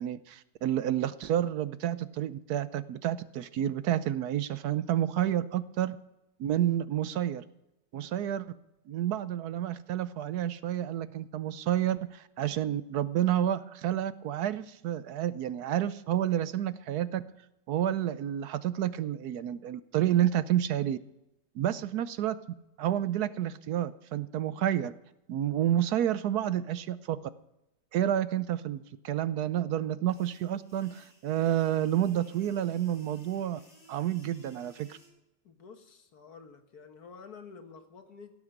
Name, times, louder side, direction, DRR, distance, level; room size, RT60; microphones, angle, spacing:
voice 1, 0.0-6.0 6.4-7.4 7.9-8.5 8.9-17.2 17.7-21.0 21.5-22.4 22.8-24.9 25.3-27.2 27.9-33.6 33.9-35.0, right 11 dB, 70° right, 15 dB, 1.1 m, -29 dB
sound 1, 30.1-35.1, right 1 dB, 20° left, 4.7 m, -58 dB
voice 2, 35.4-38.3, left 5 dB, 65° left, 7 dB, 1.9 m, -50 dB
17.0 x 8.7 x 6.6 m, 0.90 s
omnidirectional pair, 1.8 m